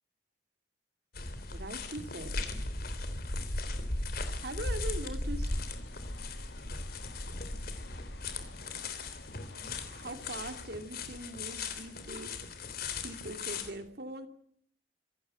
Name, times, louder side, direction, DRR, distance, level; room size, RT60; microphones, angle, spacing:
sound 1, 1.1-13.7, left 2 dB, 60° left, 3.4 m, -37 dB
voice 1, 1.5-2.5 4.4-5.5 9.9-12.3 13.0-14.3, right 1 dB, 65° right, 7 dB, 2.6 m, -41 dB
sound 2, 5.4-10.7, left 2 dB, 75° left, 2.0 m, -52 dB
26.0 x 14.5 x 8.9 m, 0.63 s
head